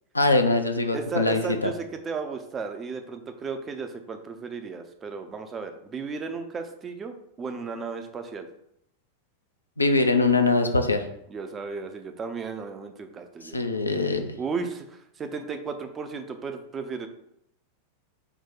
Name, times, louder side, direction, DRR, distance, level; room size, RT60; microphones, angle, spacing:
voice 1, 0.1-1.7 9.8-11.0 13.5-14.3, left 3 dB, 80° left, 6 dB, 0.4 m, -22 dB
voice 2, 0.9-8.5 11.3-13.6 14.4-17.1, right 5 dB, 20° right, 7 dB, 0.4 m, -34 dB
4.6 x 2.1 x 3.8 m, 0.76 s
figure-of-eight pair, 90°, 0 cm